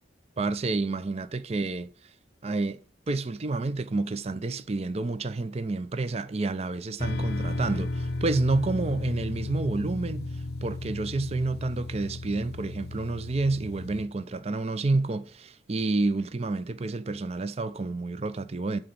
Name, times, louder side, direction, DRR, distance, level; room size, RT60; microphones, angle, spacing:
voice 1, 0.4-2.1 2.4-2.8 3.1-18.8, right 3 dB, 35° right, 0.5 m, -29 dB
sound 1, 7.0-14.1, left 2 dB, 60° left, 0.6 m, -34 dB
11.0 x 3.9 x 7.7 m
head